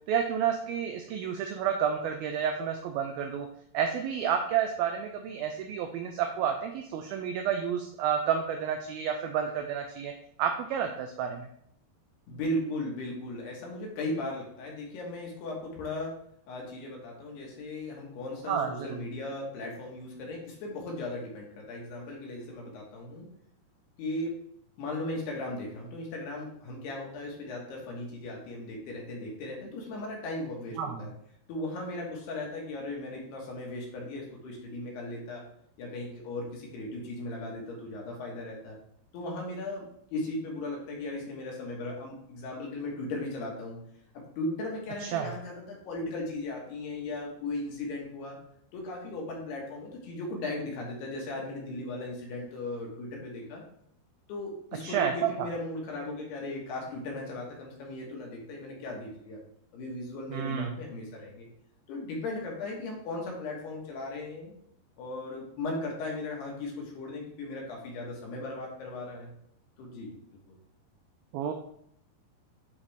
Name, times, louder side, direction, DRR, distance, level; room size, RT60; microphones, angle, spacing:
voice 1, 0.1-3.5 3.7-10.1 10.4-11.5 18.5-19.0 30.8-31.1 45.0-45.3 54.8-55.5 60.3-60.7 71.3-71.5, right 8 dB, 90° right, 5 dB, 2.1 m, -30 dB
voice 2, 12.3-16.1 16.5-23.3 24.0-24.4 24.8-31.1 31.5-35.5 35.8-38.8 39.1-43.8 44.4-48.4 48.7-53.6 54.3-59.4 59.7-61.5 61.9-64.5 65.0-69.3 69.8-70.1, left 2 dB, 75° left, -1 dB, 3.5 m, -37 dB
9.7 x 4.1 x 3.4 m, 0.68 s
omnidirectional pair, 4.9 m